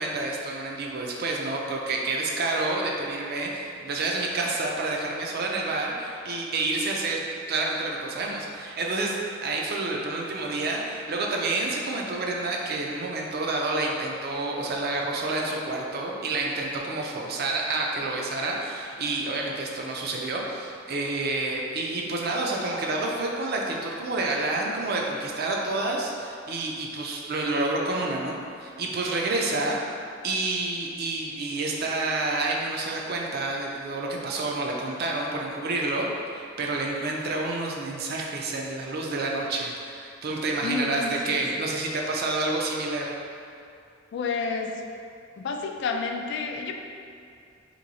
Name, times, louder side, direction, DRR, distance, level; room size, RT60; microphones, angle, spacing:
voice 1, 0.0-9.2 9.4-29.8 30.2-43.1, right 2 dB, 55° right, -1 dB, 0.5 m, -29 dB
voice 2, 40.6-41.4 44.1-44.8 45.4-46.7, left 5 dB, 65° left, 3 dB, 0.3 m, -30 dB
3.0 x 2.7 x 3.9 m, 2.4 s
head